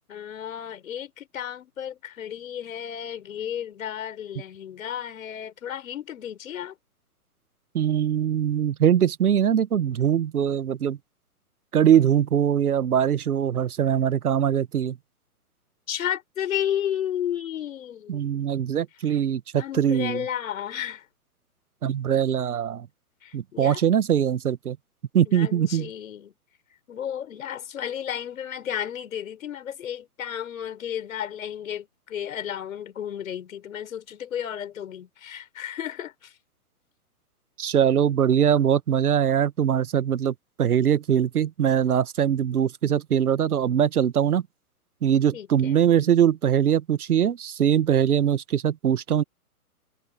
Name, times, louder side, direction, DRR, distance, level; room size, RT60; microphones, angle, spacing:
voice 1, 0.1-6.7 15.9-18.2 19.6-21.0 23.2-23.8 25.3-26.3 26.9-36.3 45.3-45.8, left 10 dB, 60° left, 5.9 m, -33 dB
voice 2, 7.7-11.0 11.7-15.0 18.1-20.2 21.8-22.9 23.3-24.8 25.1-25.9 37.6-44.4 45.0-49.2, right 9 dB, 70° right, 1.3 m, -22 dB
hypercardioid pair, 130°, 45 cm